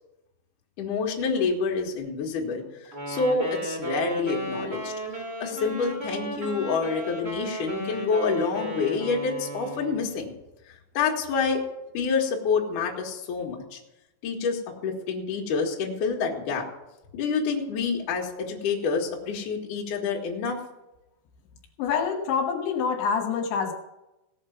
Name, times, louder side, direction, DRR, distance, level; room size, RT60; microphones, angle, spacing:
voice 1, 0.8-4.9 5.4-10.3 10.9-11.6 11.9-13.8 14.2-16.7 17.1-20.6, left 5 dB, 55° left, -1 dB, 2.8 m, -27 dB
Wind instrument woodwind instrument, 2.9-10.1, right 1 dB, 20° right, 1.6 m, -34 dB
voice 2, 21.8-23.7, left 6 dB, 75° left, 1 dB, 3.5 m, -26 dB
17.5 x 6.6 x 7.0 m, 0.95 s
omnidirectional pair, 5.6 m